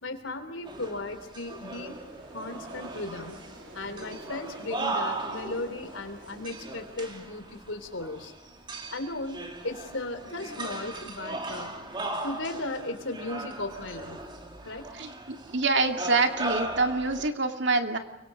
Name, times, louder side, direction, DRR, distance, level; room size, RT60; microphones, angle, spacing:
voice 1, 0.0-2.0 2.3-3.4 3.7-8.3 8.9-9.4 9.6-11.7 12.2-14.2 14.6-14.8, left 2 dB, 85° left, 8 dB, 3.5 m, -36 dB
sound 1, 0.6-17.3, right 2 dB, 25° right, 2.6 m, -38 dB
sound 2, 1.4-7.3, right 1 dB, 85° right, 7.0 m, -50 dB
voice 2, 15.0-18.0, right 3 dB, 65° right, 5 dB, 2.4 m, -26 dB
29.5 x 24.5 x 5.1 m, 1.0 s
head